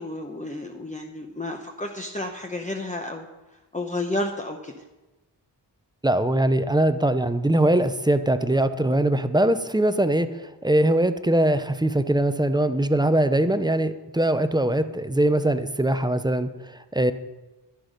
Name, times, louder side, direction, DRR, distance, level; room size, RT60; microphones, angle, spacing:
voice 1, 0.0-3.3 3.7-4.8, left 2 dB, 15° left, 3 dB, 0.9 m, -31 dB
voice 2, 6.0-17.1, right 1 dB, 10° right, 11 dB, 0.6 m, -22 dB
11.5 x 10.5 x 5.2 m, 1.1 s
wide cardioid pair, 100°, 42 cm